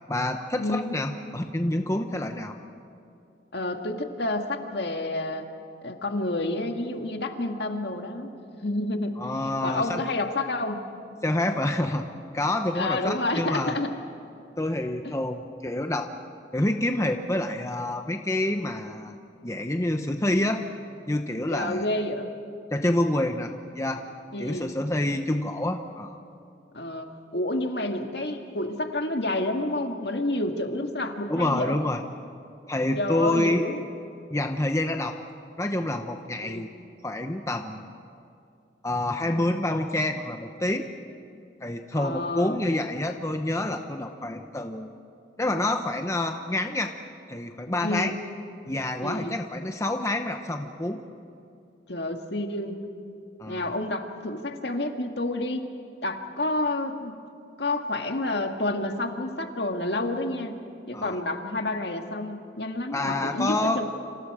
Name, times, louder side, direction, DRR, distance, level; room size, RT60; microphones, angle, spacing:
voice 1, 0.1-2.6 9.2-10.0 11.2-12.1 12.3-13.7 14.6-16.1 16.5-19.2 19.4-20.6 21.1-21.8 22.7-24.0 24.4-26.2 31.3-32.0 32.7-33.6 34.3-35.1 35.6-36.7 37.0-37.9 38.8-40.9 41.6-44.9 45.4-46.9 47.3-48.1 48.7-51.0 53.4-53.7 60.9-61.2 62.9-63.8, left 1 dB, 15° left, 5 dB, 0.8 m, -27 dB
voice 2, 0.6-1.0 3.5-5.5 5.8-8.3 8.6-9.1 9.6-10.8 12.7-13.9 21.5-22.3 24.3-24.7 26.7-31.8 33.0-33.8 36.4-36.7 41.9-42.6 47.8-48.1 49.0-49.4 51.9-52.8 53.5-55.6 56.0-57.1 57.6-60.6 60.9-63.9, left 2 dB, 60° left, 4 dB, 1.9 m, -29 dB
29.5 x 27.0 x 5.0 m, 2.6 s
head